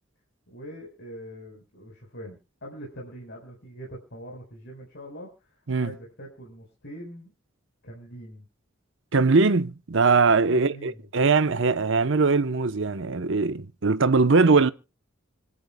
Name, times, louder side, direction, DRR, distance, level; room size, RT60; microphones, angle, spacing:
voice 1, 0.5-5.3 5.8-7.3 7.8-8.4 10.5-11.0, equal, 60° left, 4.6 m, -42 dB
voice 2, 9.1-14.7, right 4 dB, 65° right, 0.8 m, -21 dB
26.0 x 11.0 x 2.2 m
head